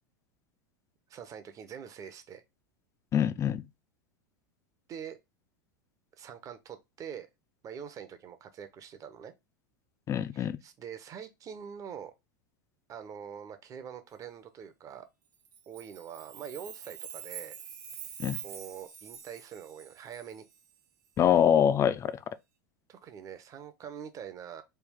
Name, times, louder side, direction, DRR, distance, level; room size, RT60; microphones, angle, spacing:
voice 1, 1.1-2.4 4.9-5.2 6.2-7.3 7.6-9.3 10.3-12.1 12.9-15.1 15.7-17.5 18.4-20.5 22.9-24.6, right 8 dB, 35° right, 0.7 m, -44 dB
voice 2, 3.1-3.6 10.1-10.6 18.2-18.4 21.2-22.2, left 9 dB, 25° left, 0.4 m, -24 dB
Chime, 15.4-20.6, right 8 dB, 65° right, 0.8 m, -45 dB
3.3 x 2.4 x 3.5 m
hypercardioid pair, 105°, 10 cm